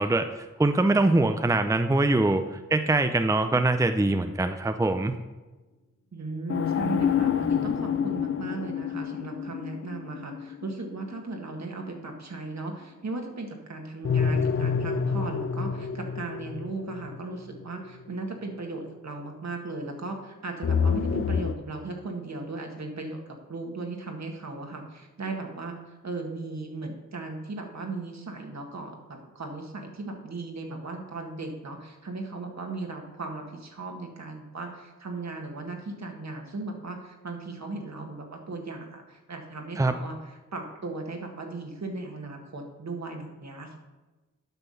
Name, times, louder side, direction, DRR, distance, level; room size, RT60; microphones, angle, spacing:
voice 1, 0.0-5.2 39.8-40.0, right 2 dB, 10° right, 8 dB, 0.6 m, -23 dB
voice 2, 6.1-25.8 26.0-43.8, right 3 dB, 65° right, 2 dB, 1.8 m, -37 dB
sound 1, 6.5-11.6 14.0-18.0 20.6-21.5, left 6 dB, 45° left, 0.5 m, -28 dB
9.1 x 6.0 x 5.6 m, 1.2 s
cardioid pair, 55°, 30 cm